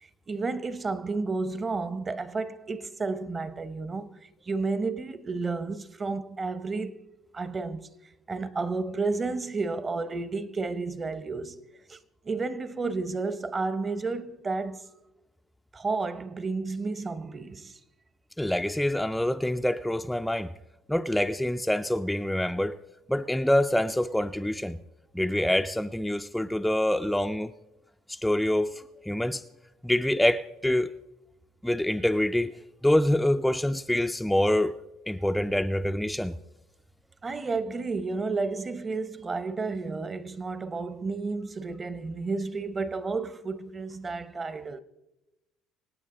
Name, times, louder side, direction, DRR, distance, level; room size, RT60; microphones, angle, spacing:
voice 1, 0.0-7.0 7.3-7.9 8.3-11.6 11.9-12.0 12.3-14.9 15.7-17.8 37.2-44.8, right 3 dB, 30° right, 0.9 m, -31 dB
voice 2, 18.4-20.5 20.9-22.8 23.1-24.8 25.1-27.5 28.1-29.4 29.8-30.9 31.6-32.5 32.8-34.7 35.1-36.3, left 1 dB, 5° left, 0.4 m, -26 dB
25.5 x 9.0 x 3.8 m
supercardioid pair, 95°, 0 cm